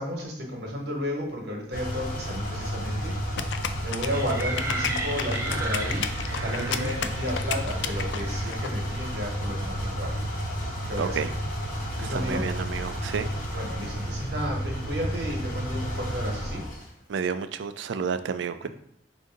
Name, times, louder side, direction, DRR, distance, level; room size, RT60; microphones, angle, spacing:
voice 1, 0.0-3.5 3.8-10.3 10.9-11.2 12.0-12.4 13.5-16.6 18.6-18.7, equal, 65° right, -1 dB, 1.3 m, -33 dB
sound 1, 1.7-16.8, equal, 50° left, 1.0 m, -31 dB
sound 2, 3.4-8.7, left 8 dB, 75° left, 0.3 m, -32 dB
sound 3, 4.1-9.3, right 2 dB, 15° right, 0.6 m, -36 dB
voice 2, 6.6-6.9 11.0-11.3 12.0-13.3 17.1-18.7, right 6 dB, 85° right, 11 dB, 0.4 m, -31 dB
5.2 x 2.6 x 3.7 m, 0.73 s
head